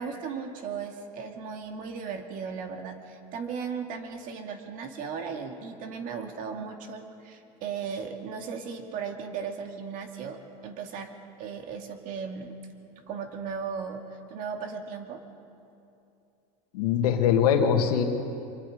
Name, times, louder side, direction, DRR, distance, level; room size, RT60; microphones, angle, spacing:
voice 1, 0.0-12.5 13.1-15.2, right 6 dB, 45° right, 4 dB, 2.4 m, -36 dB
voice 2, 16.7-18.0, left 8 dB, 85° left, 4 dB, 2.2 m, -22 dB
25.5 x 23.0 x 5.1 m, 2.6 s
supercardioid pair, 135°, 19 cm